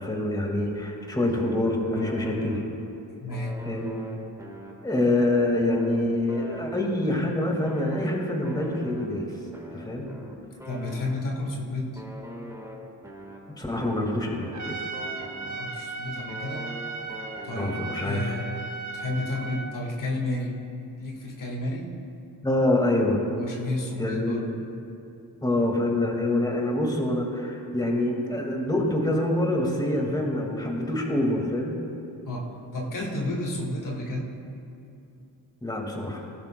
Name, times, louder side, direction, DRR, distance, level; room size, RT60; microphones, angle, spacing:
voice 1, 0.0-2.6 3.7-3.9 4.8-9.3 9.7-10.1 13.5-14.9 17.6-18.4 22.4-23.2 24.0-24.4 25.4-31.8 35.6-36.2, left 1 dB, 10° left, 0 dB, 1.9 m, -26 dB
sound 1, 1.4-3.0 3.3-7.3 7.6-11.5 11.9-15.9 16.3-18.1, equal, 10° right, 1.5 m, -43 dB
voice 2, 3.2-3.6 10.6-12.0 15.4-16.7 17.4-18.5 18.9-20.6 21.0-22.0 23.3-24.5 32.2-34.3, left 1 dB, 55° left, -1 dB, 1.6 m, -31 dB
Trumpet, 14.5-19.8, right 3 dB, 45° right, 1.1 m, -36 dB
18.5 x 12.0 x 2.2 m, 2.7 s
cardioid pair, 85°, 38 cm